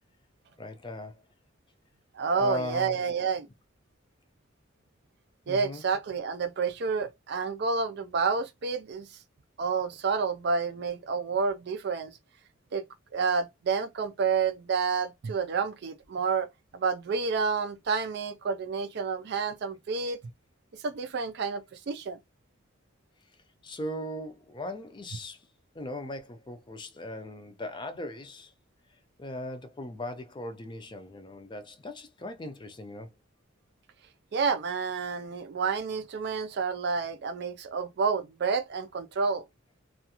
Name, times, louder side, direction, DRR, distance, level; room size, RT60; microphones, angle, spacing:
voice 1, 0.6-1.2 2.4-3.0 5.5-5.8 23.6-25.5 25.7-28.5 29.2-33.1, left 1 dB, 25° left, 0.4 m, -38 dB
voice 2, 2.1-3.5 5.5-9.1 9.6-12.1 12.7-12.8 13.1-16.5 16.7-20.2 20.8-22.2 34.3-39.4, right 5 dB, 55° right, 0.4 m, -29 dB
2.4 x 2.3 x 2.8 m
head